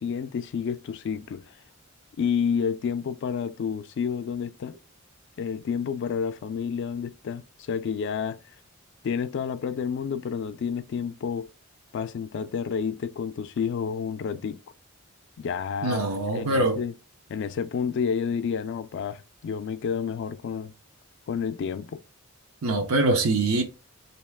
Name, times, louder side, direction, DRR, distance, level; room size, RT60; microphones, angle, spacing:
voice 1, 0.0-1.4 2.2-4.8 5.4-8.4 9.0-11.5 11.9-14.6 15.4-16.1 16.3-16.9 17.3-20.7 21.3-22.0, left 6 dB, 55° left, 0.3 m, -30 dB
voice 2, 15.8-16.8 22.6-23.6, right 2 dB, 90° right, 0.7 m, -23 dB
3.1 x 2.8 x 3.4 m
head